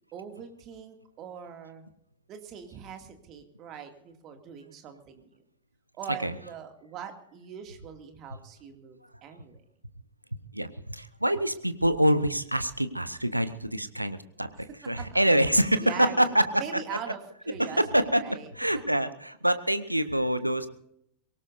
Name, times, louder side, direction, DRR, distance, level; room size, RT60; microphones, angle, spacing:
voice 1, 0.1-1.8 2.3-5.4 5.9-9.6 15.0-15.1 15.5-17.2 17.5-18.5, right 8 dB, 35° right, 6 dB, 2.3 m, -42 dB
voice 2, 10.5-14.5 14.9-16.4 17.6-20.7, right 1 dB, 85° right, 12 dB, 0.9 m, -25 dB
23.0 x 18.0 x 2.6 m, 0.73 s
figure-of-eight pair, 90°, 0 cm